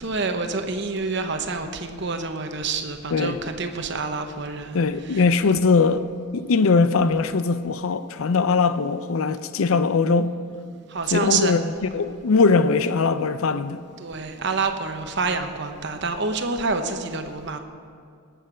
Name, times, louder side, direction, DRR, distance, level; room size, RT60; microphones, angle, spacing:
voice 1, 0.0-4.8 5.1-5.2 10.9-11.5 14.0-17.6, right 4 dB, 55° right, 0.9 m, -27 dB
voice 2, 4.7-6.0 6.3-10.3 11.1-13.8, left 4 dB, 75° left, 0.5 m, -21 dB
19.0 x 7.9 x 5.1 m
head